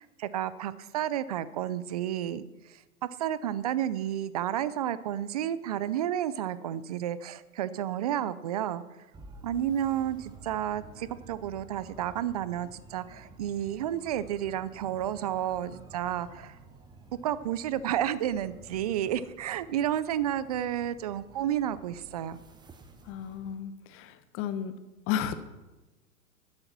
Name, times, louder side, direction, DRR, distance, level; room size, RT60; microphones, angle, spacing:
voice 1, 0.0-2.4 2.7-2.8 3.2-8.8 9.4-16.6 17.2-22.4, right 11 dB, 30° right, 16 dB, 0.4 m, -31 dB
sound 1, 9.1-23.5, right 2 dB, 10° right, 0.8 m, -52 dB
voice 2, 23.1-24.7 25.1-25.3, left 9 dB, 30° left, 11 dB, 1.0 m, -33 dB
11.5 x 8.7 x 6.0 m, 1.1 s
hypercardioid pair, 115°, 46 cm